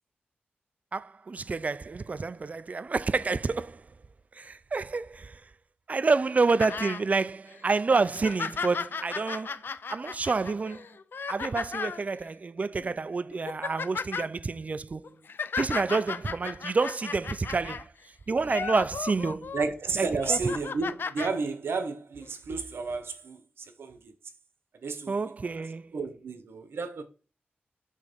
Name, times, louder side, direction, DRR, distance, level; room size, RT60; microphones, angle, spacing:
voice 1, 0.9-3.8 4.4-5.4 5.9-9.6 9.9-10.8 11.3-15.1 15.6-17.9 18.3-19.5 20.0-20.4 25.1-25.9, right 4 dB, 40° right, 0.3 m, -28 dB
sound 1, 6.6-7.0 7.5-7.6 8.0-12.0 12.8-12.9 13.3-14.3 15.0-17.8 18.4-19.6 20.1-21.3 22.2-22.3, left 5 dB, 65° left, 0.4 m, -35 dB
voice 2, 19.5-24.1 24.8-25.5 25.9-27.0, right 4 dB, 90° right, 0.9 m, -32 dB
6.4 x 3.5 x 5.1 m
wide cardioid pair, 85°, 4 cm